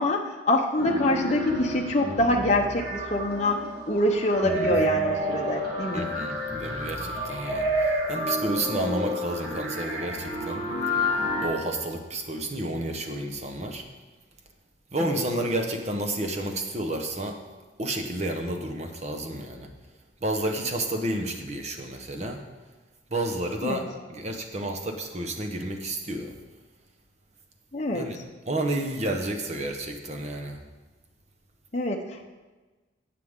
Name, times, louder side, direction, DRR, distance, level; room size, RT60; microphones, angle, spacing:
voice 1, 0.0-3.6 3.9-6.0 15.0-15.2 23.6-23.8 27.7-28.1 31.7-32.3, left 1 dB, 35° left, 1 dB, 0.8 m, -25 dB
sound 1, 0.8-11.4, equal, 55° right, 3.5 m, -29 dB
voice 2, 4.4-4.8 5.9-10.7 10.9-13.8 14.9-17.4 17.8-19.7 20.2-22.4 23.1-23.8 24.1-26.3 27.9-28.2 28.5-30.6, right 1 dB, 35° right, 3 dB, 1.1 m, -31 dB
17.5 x 6.9 x 3.7 m, 1.3 s
head